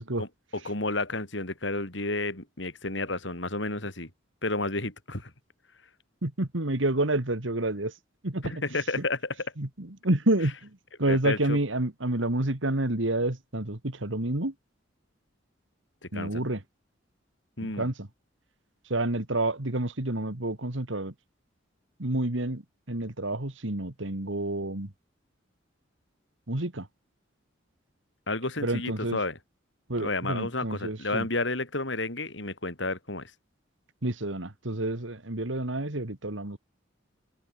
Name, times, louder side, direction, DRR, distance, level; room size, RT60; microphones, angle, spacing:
voice 1, 0.2-4.1 4.4-5.3 8.4-9.5 11.1-11.6 16.1-16.4 17.6-17.9 28.3-29.4 30.0-33.3, left 2 dB, 70° left, 5.9 m, -31 dB
voice 2, 6.2-7.9 8.2-8.5 9.6-10.5 11.0-14.5 16.1-16.6 17.6-18.1 18.9-21.1 22.0-22.6 22.9-24.9 26.5-26.9 28.6-29.2 29.9-31.3 34.0-36.6, right 1 dB, 80° right, 2.4 m, -29 dB
open air
head